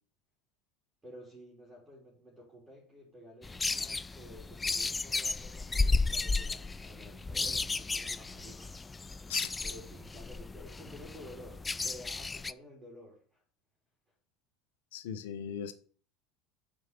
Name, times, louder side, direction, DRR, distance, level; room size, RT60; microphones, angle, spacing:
voice 1, 1.0-8.7 9.6-13.4, equal, 20° right, 3.4 m, -52 dB
sound 1, 3.4-12.5, left 3 dB, 20° left, 0.4 m, -34 dB
voice 2, 14.9-15.7, left 8 dB, 80° left, 0.9 m, -38 dB
6.5 x 4.7 x 6.8 m
hypercardioid pair, 80°, 0 cm